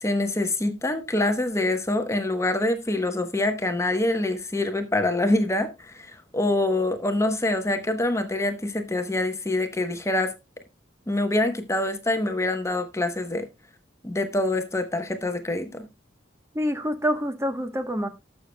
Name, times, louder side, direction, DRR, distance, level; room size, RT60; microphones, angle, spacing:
voice 1, 0.0-10.3 11.1-13.5 14.0-15.9, left 2 dB, 15° left, 1.0 m, -25 dB
voice 2, 16.5-18.1, equal, 15° right, 1.0 m, -26 dB
19.0 x 6.7 x 2.2 m
head